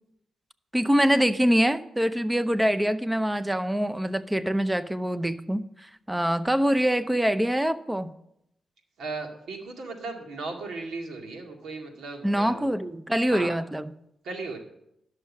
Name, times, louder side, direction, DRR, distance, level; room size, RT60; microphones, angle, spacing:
voice 1, 0.7-8.1 12.2-13.9, equal, 10° right, 13 dB, 0.7 m, -24 dB
voice 2, 9.0-12.7 13.3-13.6 14.2-14.6, right 3 dB, 85° right, 2 dB, 2.1 m, -36 dB
11.0 x 6.6 x 7.1 m, 0.78 s
cardioid pair, 80°, 0 cm